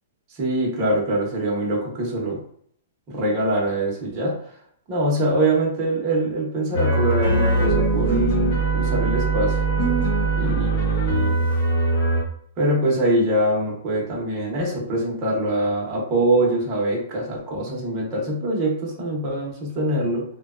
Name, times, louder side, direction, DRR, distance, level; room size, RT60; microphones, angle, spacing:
voice 1, 0.3-2.4 3.1-4.4 4.9-9.6 10.4-11.5 12.6-20.2, right 1 dB, 25° right, -3 dB, 0.8 m, -23 dB
sound 1, 6.7-12.2, right 2 dB, 35° left, 0.9 m, -21 dB
2.8 x 2.2 x 2.4 m, 0.64 s
hypercardioid pair, 160°, 0 cm